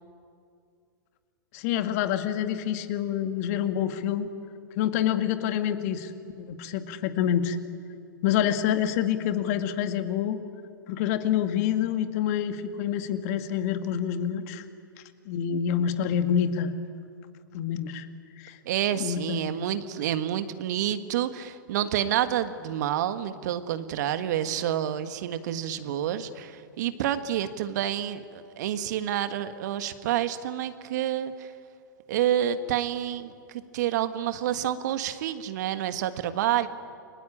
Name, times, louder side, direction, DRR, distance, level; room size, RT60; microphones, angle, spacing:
voice 1, 1.5-4.3 4.8-6.1 6.4-7.6 8.2-10.4 10.9-14.6 15.3-16.7 17.5-18.1 18.4-18.6 19.0-19.6, left 9 dB, 45° left, 8 dB, 2.0 m, -27 dB
voice 2, 18.6-31.5 32.1-36.7, right 11 dB, 55° right, 10 dB, 1.7 m, -28 dB
30.0 x 22.5 x 8.8 m, 2.3 s
figure-of-eight pair, 105°, 11 cm